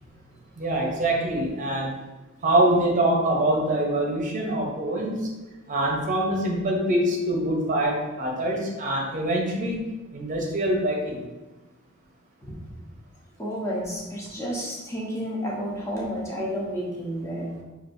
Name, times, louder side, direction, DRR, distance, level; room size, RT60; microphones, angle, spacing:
voice 1, 0.6-1.9 2.4-5.3 5.7-9.8 10.1-11.2, right 1 dB, 35° right, -1 dB, 0.7 m, -24 dB
voice 2, 13.4-17.5, equal, 15° left, -4 dB, 0.7 m, -31 dB
6.0 x 2.5 x 2.5 m, 1.2 s
head